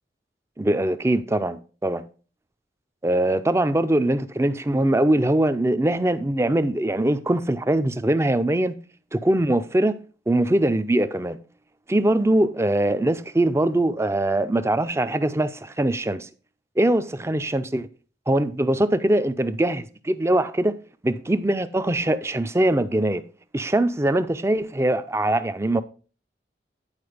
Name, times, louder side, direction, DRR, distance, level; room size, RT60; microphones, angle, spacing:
voice 1, 0.6-2.0 3.0-8.8 9.1-10.0 10.3-11.4 11.9-16.3 16.8-17.9 18.3-20.7 21.0-23.2 23.5-25.8, right 1 dB, 15° right, 0.5 m, -22 dB
9.7 x 4.7 x 4.9 m
head